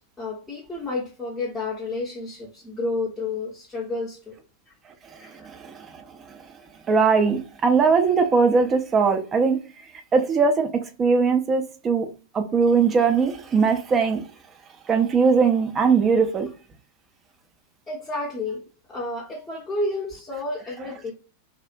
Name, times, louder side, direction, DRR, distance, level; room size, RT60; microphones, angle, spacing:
voice 1, 0.2-4.3 5.2-5.5 17.9-18.6 18.9-21.1, left 2 dB, 10° left, 0.7 m, -30 dB
voice 2, 5.4-5.9 6.9-9.6 10.1-10.7 11.0-12.1 12.3-14.2 14.9-16.5, right 5 dB, 25° right, 0.4 m, -20 dB
2.4 x 2.1 x 2.5 m
figure-of-eight pair, 90°, 0 cm